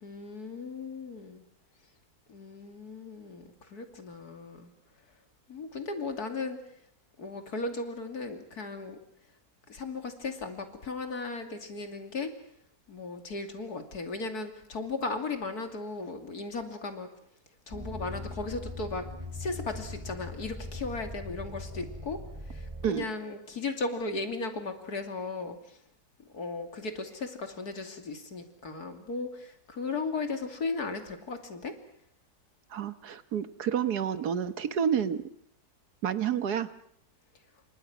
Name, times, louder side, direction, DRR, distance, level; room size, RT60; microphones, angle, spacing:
voice 1, 0.0-1.4 2.3-4.7 5.5-6.6 7.2-9.0 9.7-12.3 12.9-17.1 17.7-19.0 19.3-22.2 22.5-25.6 26.3-31.7, left 3 dB, 80° left, 6 dB, 3.2 m, -36 dB
sound 1, 17.7-22.9, left 2 dB, 20° right, 3.2 m, -40 dB
voice 2, 32.7-35.2 36.0-36.7, right 8 dB, 85° right, 12 dB, 1.8 m, -29 dB
29.0 x 25.5 x 6.1 m, 0.70 s
omnidirectional pair, 1.6 m